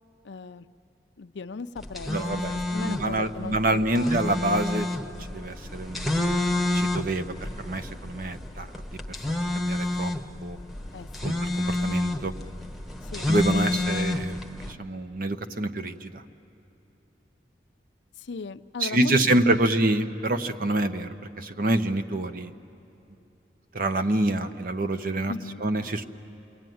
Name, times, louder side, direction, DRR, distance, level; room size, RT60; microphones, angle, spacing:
voice 1, 0.2-0.7 1.2-2.4 2.7-4.4 10.9-11.4 13.0-13.3 18.2-19.6 25.3-25.6, left 4 dB, 75° left, 12 dB, 0.6 m, -37 dB
sound 1, 1.8-14.7, left 2 dB, ahead, 1.1 m, -29 dB
voice 2, 2.1-4.9 5.3-6.4 6.7-8.7 9.1-10.1 10.4-10.6 11.2-12.3 13.3-16.2 18.8-22.5 23.7-25.3 25.6-26.0, right 1 dB, 50° right, 9 dB, 1.0 m, -27 dB
29.0 x 21.5 x 9.3 m, 2.9 s
head